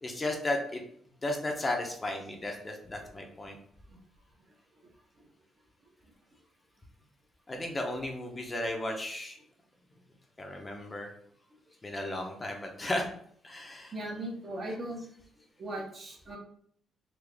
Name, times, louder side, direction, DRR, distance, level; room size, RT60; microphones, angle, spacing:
voice 1, 0.0-0.8 1.2-3.6 7.5-9.4 10.4-11.1 11.8-13.1 13.4-13.9, left 1 dB, 25° left, 2 dB, 0.7 m, -34 dB
voice 2, 13.9-15.0 15.6-16.4, right 1 dB, 45° right, -2 dB, 1.3 m, -38 dB
3.8 x 2.5 x 3.3 m, 0.62 s
cardioid pair, 85°, 0 cm